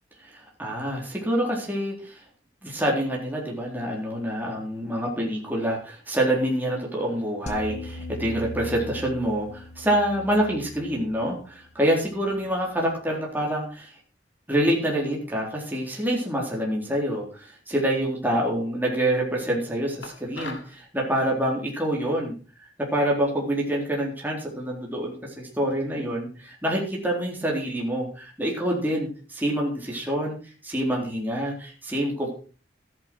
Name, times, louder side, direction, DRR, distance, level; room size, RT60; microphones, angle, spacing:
voice 1, 0.2-2.2 2.6-14.0 14.5-30.4 30.6-32.3, right 1 dB, 10° right, -2 dB, 3.9 m, -26 dB
sound 1, 7.5-12.7, left 1 dB, 35° left, 1.5 m, -40 dB
sound 2, 20.0-20.8, left 3 dB, 70° left, 2.3 m, -39 dB
14.0 x 10.5 x 4.6 m, 0.37 s
head